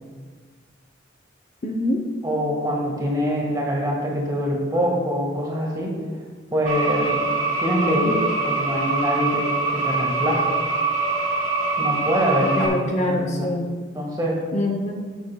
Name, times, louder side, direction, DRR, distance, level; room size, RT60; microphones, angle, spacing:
voice 1, 1.6-2.1 7.8-8.1 12.5-13.7 14.5-14.9, left 1 dB, 35° left, 2 dB, 0.7 m, -25 dB
voice 2, 2.2-5.9 6.5-7.3 7.6-10.4 11.8-13.5 13.9-14.4, equal, 20° right, -1 dB, 1.7 m, -24 dB
sound 1, 6.7-12.7, right 3 dB, 40° right, 2.0 m, -24 dB
12.0 x 8.8 x 2.2 m, 1.5 s
head